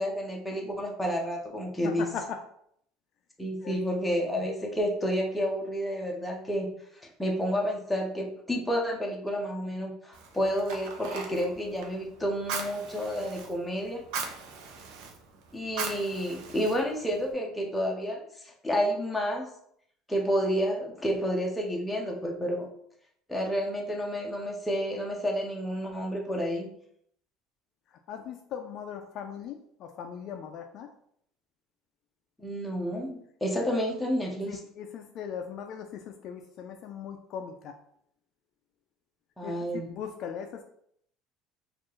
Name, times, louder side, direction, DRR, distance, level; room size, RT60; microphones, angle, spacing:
voice 1, 0.0-2.1 3.4-6.7 7.2-14.0 15.5-19.5 20.1-22.7 23.3-26.7 32.4-34.5 39.4-39.9, equal, 5° left, -1 dB, 0.7 m, -30 dB
voice 2, 1.8-2.4 3.6-3.8 4.1-4.5 28.1-30.9 33.6-33.7 34.5-37.8 39.4-40.6, left 7 dB, 50° left, 5 dB, 0.3 m, -39 dB
Fire, 10.1-17.3, right 5 dB, 70° right, 0.6 m, -40 dB
4.3 x 2.4 x 3.1 m, 0.69 s
cardioid pair, 135°, 0 cm